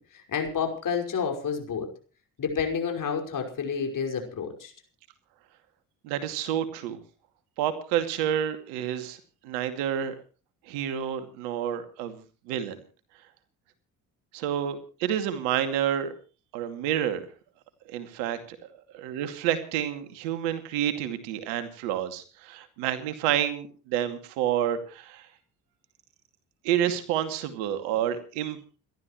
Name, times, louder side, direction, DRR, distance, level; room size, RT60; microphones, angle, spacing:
voice 1, 0.0-1.9 2.4-4.7, left 6 dB, 45° left, 3 dB, 5.6 m, -30 dB
voice 2, 6.0-7.0 7.6-9.2 9.4-10.1 10.7-12.8 14.3-16.1 16.5-17.2 17.9-18.6 18.9-25.3 26.6-28.6, right 10 dB, 70° right, 9 dB, 2.5 m, -29 dB
30.0 x 12.5 x 3.1 m, 0.36 s
figure-of-eight pair, 50°, 43 cm